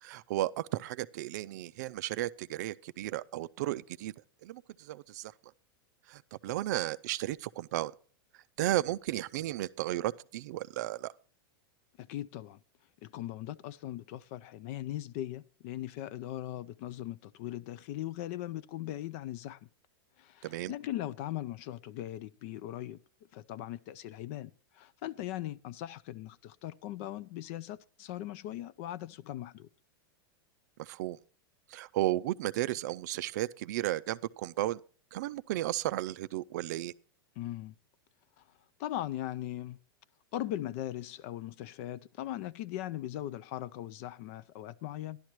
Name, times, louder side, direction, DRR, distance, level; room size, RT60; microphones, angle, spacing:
voice 1, 0.0-4.1 4.4-5.3 6.1-7.9 8.6-11.1 20.4-20.7 30.8-31.2 31.7-34.8 35.1-36.9, right 15 dB, 50° right, 0.4 m, -34 dB
voice 2, 12.0-12.6 13.0-19.6 20.2-23.0 23.3-29.7 37.4-37.7 38.4-38.5 38.8-39.8 40.3-45.2, left 13 dB, 35° left, 0.4 m, -39 dB
13.5 x 11.5 x 3.0 m
supercardioid pair, 170°, 12 cm